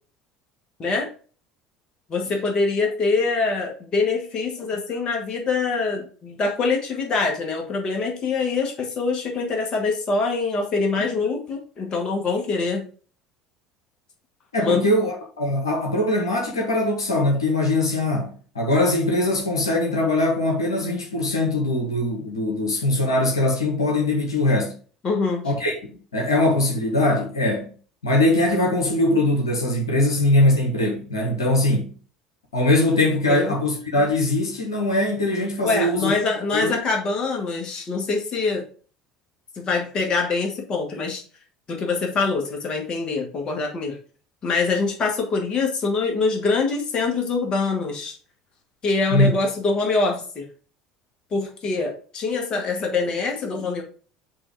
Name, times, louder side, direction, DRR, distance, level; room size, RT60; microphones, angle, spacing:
voice 1, 0.8-1.1 2.1-12.9 14.6-14.9 25.0-25.5 33.3-33.5 35.6-38.7 39.6-41.2 41.7-44.0 44.4-48.1 48.8-50.5 51.3-53.8, left 4 dB, 40° left, 2.0 m, -24 dB
voice 2, 14.5-24.8 25.4-25.7 26.1-27.7 28.0-32.0 32.5-36.1 36.5-36.8 49.1-49.3, left 1 dB, 85° left, 1.3 m, -21 dB
7.5 x 3.1 x 5.0 m
figure-of-eight pair, 65°, 2 cm